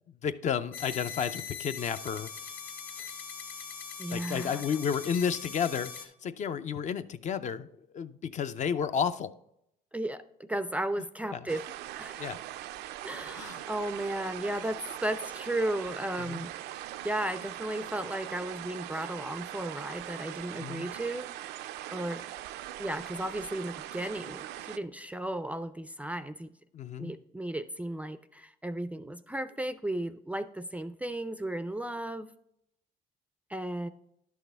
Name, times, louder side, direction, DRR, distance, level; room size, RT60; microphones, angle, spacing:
voice 1, 0.2-2.3 3.0-3.1 4.1-9.3 11.3-11.5 12.2-12.4 13.4-13.6 16.2-16.5 20.6-20.9 26.7-27.1, left 7 dB, 45° left, 11 dB, 0.5 m, -32 dB
sound 1, 0.7-6.1, left 7 dB, 70° left, 1.5 m, -41 dB
voice 2, 4.0-4.7 9.9-10.2 10.5-11.7 12.0-12.3 13.0-21.3 21.9-22.3 22.8-26.5 27.0-32.3 33.5-33.9, right 1 dB, 10° right, 12 dB, 0.4 m, -35 dB
sound 2, 11.5-24.8, right 13 dB, 80° right, 0.4 m, -41 dB
11.0 x 6.4 x 3.4 m, 0.77 s
cardioid pair, 110°, 17 cm